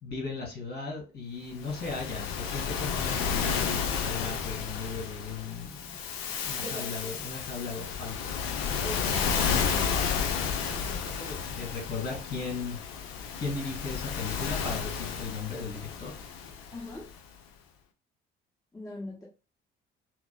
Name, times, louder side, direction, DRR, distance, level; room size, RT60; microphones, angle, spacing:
voice 1, 0.0-6.0 6.4-8.3 9.4-12.8 13.3-16.1, left 4 dB, 35° left, 0 dB, 2.0 m, -37 dB
Waves surf, 1.6-17.1, left 6 dB, 70° left, 0.6 m, -32 dB
voice 2, 6.6-7.1 8.8-9.9 16.7-17.1 18.7-19.2, left 1 dB, 10° left, -5 dB, 1.2 m, -41 dB
5.8 x 2.1 x 2.3 m, 0.30 s
figure-of-eight pair, 50°, 31 cm